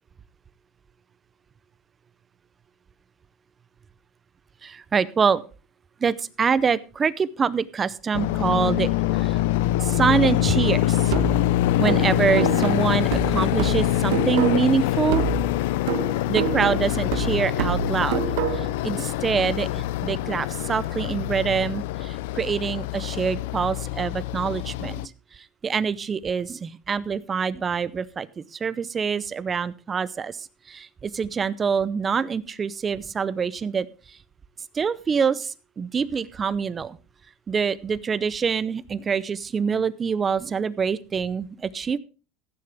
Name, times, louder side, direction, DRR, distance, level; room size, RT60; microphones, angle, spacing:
voice 1, 4.6-5.4 6.0-9.4 9.8-11.1 11.8-15.3 16.3-18.2 18.5-25.1 25.4-33.9 34.7-37.0 37.5-42.0, right 6 dB, 20° right, 17 dB, 0.6 m, -25 dB
sound 1, 8.1-25.1, left 15 dB, 75° left, 0.5 m, -24 dB
sound 2, 11.1-14.8 15.1-18.8, right 10 dB, 75° right, 1.4 m, -28 dB
15.0 x 9.7 x 3.4 m, 0.34 s
supercardioid pair, 150°, 0 cm